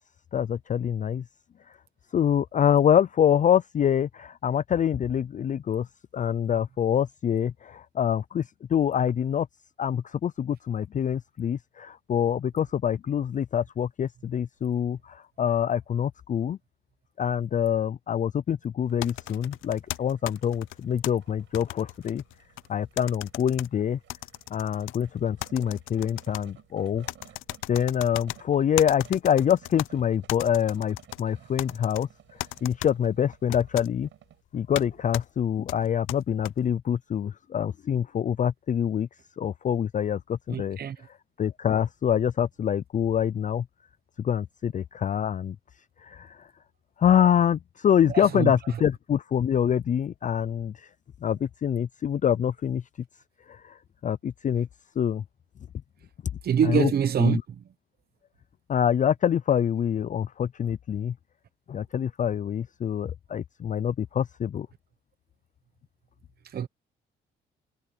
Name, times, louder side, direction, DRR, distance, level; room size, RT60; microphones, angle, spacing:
voice 1, 0.3-1.2 1.7-1.8 2.1-5.9 6.1-9.5 9.8-16.6 17.2-22.2 22.7-24.0 24.5-27.1 27.7-34.1 34.5-39.1 39.4-40.8 41.1-43.7 44.2-45.6 46.0-46.5 47.0-50.9 51.2-52.8 53.5-54.7 55.0-55.2 56.6-56.9 57.2-57.4 58.7-61.1 61.7-64.7, left 9 dB, 40° left, 0.5 m, -25 dB
sound 1, 18.8-34.4, right 11 dB, 75° right, 6.0 m, -56 dB
sound 2, 19.0-21.1 21.5-22.7 23.0-23.7 24.1-25.0 25.4-26.4 27.1-28.4 28.8-29.9 30.3-31.2 31.6-32.0 32.4-32.9 33.5-33.9 34.7-34.9 35.1-35.2 35.7-36.5, left 17 dB, 90° left, 0.5 m, -36 dB
voice 2, 40.5-41.0 48.1-48.5 56.4-57.4 66.4-66.7, right 8 dB, 50° right, 1.0 m, -25 dB
cardioid pair, 90°, 20 cm